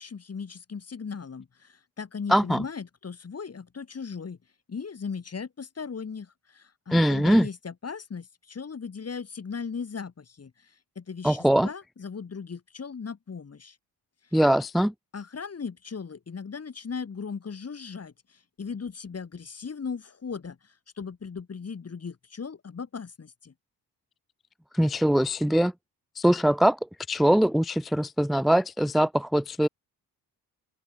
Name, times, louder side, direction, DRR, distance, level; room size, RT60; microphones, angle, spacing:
voice 1, 0.0-4.4 4.7-13.8 15.1-20.6 21.0-23.5, left 5 dB, 35° left, 1.8 m, -37 dB
voice 2, 2.3-2.6 6.9-7.5 11.2-11.7 14.3-14.9 24.7-25.7 26.2-26.8 27.1-29.7, equal, ahead, 0.4 m, -22 dB
open air
supercardioid pair, 50°, 40 cm